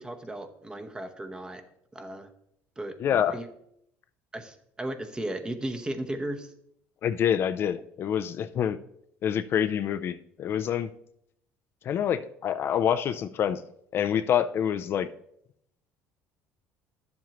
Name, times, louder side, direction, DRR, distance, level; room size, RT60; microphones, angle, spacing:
voice 1, 0.0-1.6 1.9-2.3 2.8-3.0 3.3-3.5 4.3-6.5, right 1 dB, 15° right, 7 dB, 0.9 m, -35 dB
voice 2, 3.0-3.4 7.0-8.8 9.2-10.9 11.8-13.6 13.9-15.1, left 9 dB, 50° left, 11 dB, 0.4 m, -26 dB
11.0 x 7.3 x 3.0 m, 0.73 s
supercardioid pair, 105°, 5 cm